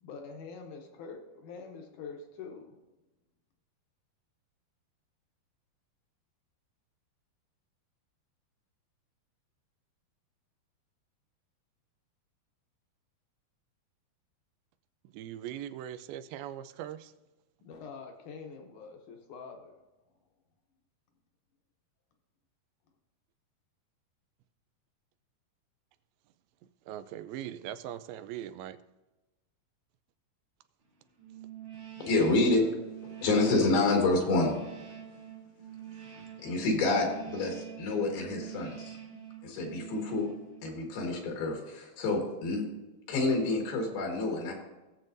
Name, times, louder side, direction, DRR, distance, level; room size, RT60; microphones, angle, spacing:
voice 1, 0.0-2.8 17.6-19.7, left 5 dB, 70° left, 2.0 m, -45 dB
voice 2, 15.0-17.1 26.9-28.8, right 11 dB, 85° right, 2.4 m, -40 dB
sound 1, 31.2-41.1, right 10 dB, 55° right, 1.6 m, -46 dB
voice 3, 32.0-32.6 33.0-34.5 36.4-39.0 39.4-40.3 40.6-42.6 43.1-44.5, left 2 dB, 85° left, 3.6 m, -28 dB
18.5 x 7.4 x 2.6 m
omnidirectional pair, 4.3 m